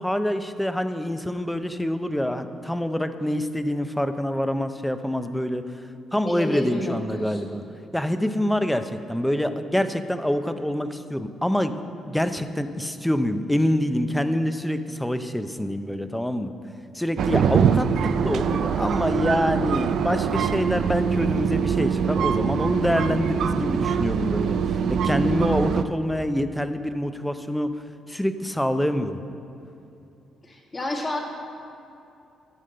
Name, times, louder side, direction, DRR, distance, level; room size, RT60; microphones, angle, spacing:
voice 1, 0.0-5.8 6.1-7.6 7.9-11.8 12.1-16.5 16.9-17.9 18.2-27.7 28.1-29.2, equal, 5° left, 10 dB, 0.6 m, -26 dB
voice 2, 6.2-7.4 30.4-31.2, left 1 dB, 25° left, 1 dB, 1.6 m, -30 dB
sound 1, 17.2-25.8, right 7 dB, 70° right, 0.4 m, -23 dB
11.0 x 5.2 x 7.7 m, 2.7 s
cardioid pair, 90°, 0 cm